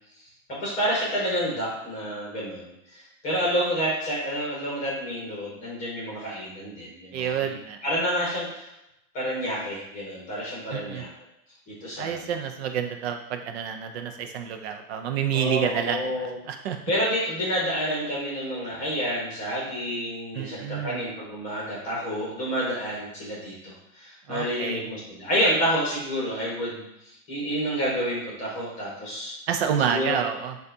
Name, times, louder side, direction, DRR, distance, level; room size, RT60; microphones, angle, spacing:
voice 1, 0.5-7.5 7.8-8.7 9.1-11.1 11.7-12.3 15.3-16.3 16.9-29.3 29.8-30.2, equal, 20° left, -5 dB, 1.1 m, -29 dB
voice 2, 7.1-7.8 10.7-11.0 12.0-16.8 20.3-21.0 24.3-24.9 29.5-30.6, right 8 dB, 50° right, 6 dB, 0.5 m, -29 dB
6.4 x 2.4 x 2.7 m, 0.84 s
supercardioid pair, 170°, 44 cm